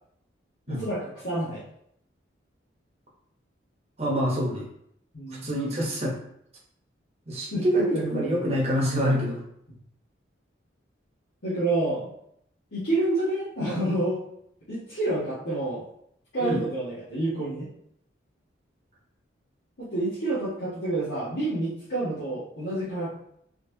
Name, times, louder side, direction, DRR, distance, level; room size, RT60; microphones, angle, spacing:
voice 1, 0.7-1.6 5.1-5.5 7.5-8.5 11.4-12.1 12.7-14.2 14.7-15.8 16.3-17.7 19.8-23.1, right 2 dB, 70° left, -12 dB, 1.4 m, -28 dB
voice 2, 4.0-4.7 5.3-6.2 7.3-9.4 16.4-16.6, equal, 30° right, -4 dB, 0.9 m, -26 dB
4.2 x 3.1 x 2.8 m, 0.72 s
head